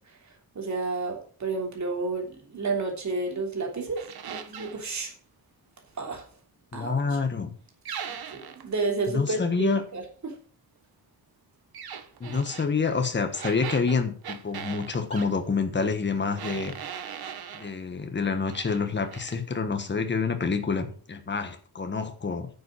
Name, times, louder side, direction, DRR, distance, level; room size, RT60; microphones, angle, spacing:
voice 1, 0.5-5.1 6.0-6.2 6.7-6.9 8.1-9.7 9.9-10.3, right 3 dB, 50° right, 2 dB, 3.3 m, -31 dB
sound 1, 4.0-4.8 7.9-8.7 11.7-12.7 13.3-15.3 16.4-17.7 18.2-18.8 19.1-19.4, right 8 dB, 75° right, 1.3 m, -39 dB
voice 2, 6.7-7.5 9.1-9.8 12.2-16.8 17.5-22.5, left 4 dB, 30° left, 7 dB, 1.5 m, -27 dB
10.5 x 7.1 x 6.3 m, 0.43 s
wide cardioid pair, 175°, 37 cm